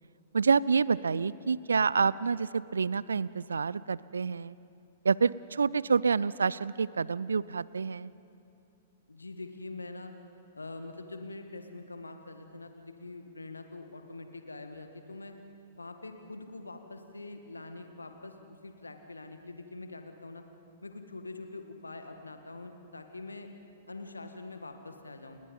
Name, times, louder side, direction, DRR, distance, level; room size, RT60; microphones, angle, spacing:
voice 1, 0.3-4.6 5.0-8.1, right 5 dB, 70° right, 21 dB, 0.5 m, -28 dB
voice 2, 9.1-10.1 10.5-15.4 15.8-20.4 20.8-23.5 23.9-25.4, left 2 dB, 80° left, 7 dB, 1.8 m, -44 dB
30.0 x 20.0 x 5.5 m, 2.8 s
figure-of-eight pair, 105°, 0 cm